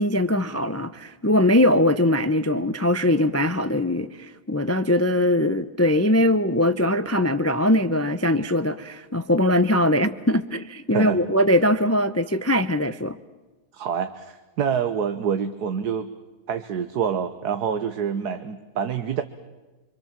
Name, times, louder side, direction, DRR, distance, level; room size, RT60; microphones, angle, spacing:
voice 1, 0.0-13.2, left 1 dB, 20° left, 0.4 m, -21 dB
voice 2, 13.7-16.1 16.5-19.2, right 7 dB, 90° right, 1.6 m, -26 dB
26.5 x 25.5 x 7.4 m
omnidirectional pair, 1.7 m